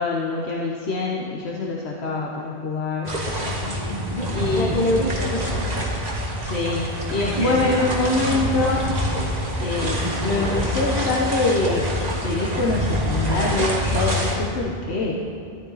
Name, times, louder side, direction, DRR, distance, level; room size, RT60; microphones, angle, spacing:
voice 1, 0.0-3.1 4.3-4.7 6.4-8.9 9.6-11.9 12.2-15.2, left 3 dB, 80° left, -2 dB, 1.3 m, -24 dB
sound 1, 3.0-14.3, equal, 40° right, 1.8 m, -25 dB
voice 2, 3.9-5.5 7.4-7.8, left 1 dB, 55° left, -6 dB, 2.9 m, -25 dB
14.5 x 11.5 x 4.0 m, 2.6 s
omnidirectional pair, 1.1 m